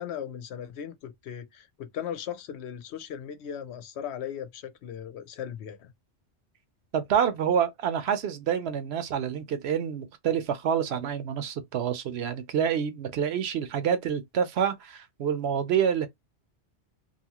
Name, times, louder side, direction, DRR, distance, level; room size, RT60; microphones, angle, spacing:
voice 1, 0.0-5.9, left 9 dB, 75° left, 0.8 m, -37 dB
voice 2, 6.9-16.1, right 8 dB, 70° right, 0.8 m, -27 dB
2.7 x 2.4 x 2.8 m
omnidirectional pair, 1.2 m